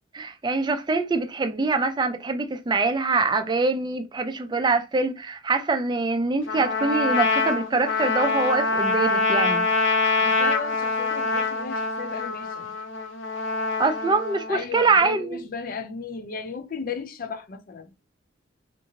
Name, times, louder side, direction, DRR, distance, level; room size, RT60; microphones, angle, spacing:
voice 1, 0.1-9.7 13.8-15.4, right 3 dB, 25° right, 0.4 m, -24 dB
Trumpet, 6.5-14.5, left 3 dB, 85° left, 0.7 m, -25 dB
voice 2, 10.2-12.7 14.5-17.9, left 5 dB, 50° left, 0.5 m, -35 dB
2.5 x 2.5 x 2.9 m
head